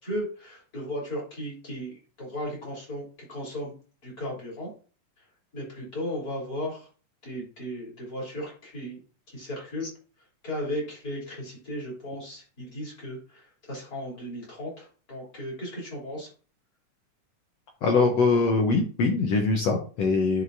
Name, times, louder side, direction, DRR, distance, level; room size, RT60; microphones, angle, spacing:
voice 1, 0.0-3.7 4.0-4.7 5.5-6.9 7.2-9.0 9.3-9.9 10.4-16.3, equal, 25° left, -5 dB, 4.0 m, -35 dB
voice 2, 17.8-20.4, left 4 dB, 65° left, 2 dB, 1.7 m, -23 dB
11.0 x 4.9 x 2.7 m, 0.38 s
omnidirectional pair, 3.7 m